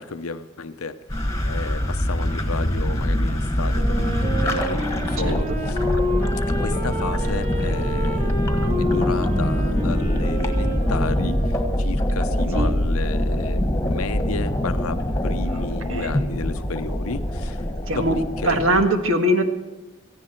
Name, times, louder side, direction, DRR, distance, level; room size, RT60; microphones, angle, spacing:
voice 1, 0.0-5.8 6.4-17.6 17.9-18.6, left 4 dB, 90° left, 11 dB, 0.7 m, -33 dB
sound 1, 1.1-18.9, equal, 15° left, 1.5 m, -24 dB
Wind instrument woodwind instrument, 3.7-12.0, left 1 dB, 35° right, 3.2 m, -30 dB
voice 2, 5.2-5.6 12.5-12.7 15.9-16.2 17.9-18.2 18.4-19.4, right 1 dB, 70° right, 5 dB, 1.6 m, -21 dB
17.5 x 15.0 x 4.4 m, 1.1 s
head